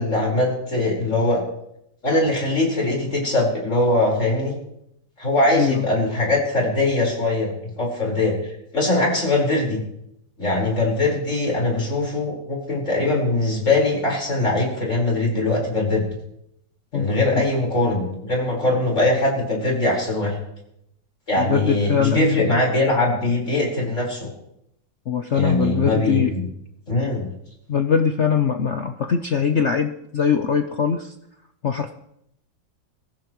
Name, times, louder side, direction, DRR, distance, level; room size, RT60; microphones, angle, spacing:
voice 1, 0.0-1.4 2.0-4.6 5.2-8.3 8.7-9.8 10.4-16.0 16.9-20.4 21.3-24.3 25.3-26.5 26.9-27.3, left 2 dB, 35° left, -2 dB, 5.1 m, -21 dB
voice 2, 5.5-5.8 16.9-17.1 21.4-22.5 25.1-26.3 27.7-31.1 31.6-31.9, left 7 dB, 60° left, 6 dB, 0.7 m, -21 dB
22.5 x 15.0 x 3.1 m, 0.78 s
omnidirectional pair, 2.1 m